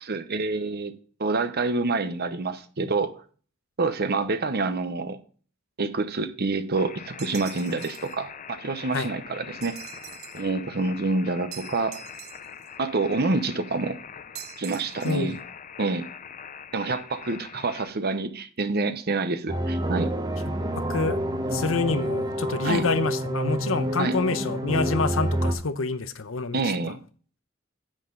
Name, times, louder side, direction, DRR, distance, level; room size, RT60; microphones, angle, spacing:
voice 1, 0.0-0.9 1.2-3.2 3.8-5.2 5.8-9.8 10.3-12.0 12.8-14.0 14.6-15.4 15.8-16.1 16.7-20.1 22.6-22.8 24.0-24.1 26.5-27.0, right 3 dB, 50° right, 0.9 m, -27 dB
sound 1, 6.8-17.9, left 7 dB, 40° left, 0.5 m, -43 dB
sound 2, 7.2-8.2 9.6-10.5 11.5-12.7 14.3-15.4, right 11 dB, 90° right, 0.8 m, -43 dB
voice 2, 15.0-15.4 20.8-21.2 21.5-26.6, left 3 dB, 70° left, 0.9 m, -27 dB
sound 3, 19.5-25.5, equal, 20° right, 0.9 m, -28 dB
10.0 x 7.6 x 3.9 m
head